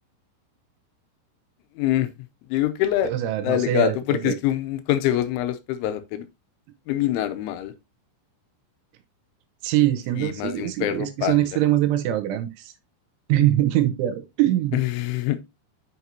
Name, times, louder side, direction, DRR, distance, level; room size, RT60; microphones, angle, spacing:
voice 1, 1.8-2.1 2.5-3.1 3.4-6.3 6.9-7.7 10.2-11.4 14.7-15.4, left 13 dB, 85° left, 3.0 m, -24 dB
voice 2, 3.0-4.4 9.6-12.7 13.3-14.8, right 13 dB, 85° right, 3.2 m, -23 dB
8.1 x 6.1 x 2.7 m
omnidirectional pair, 5.6 m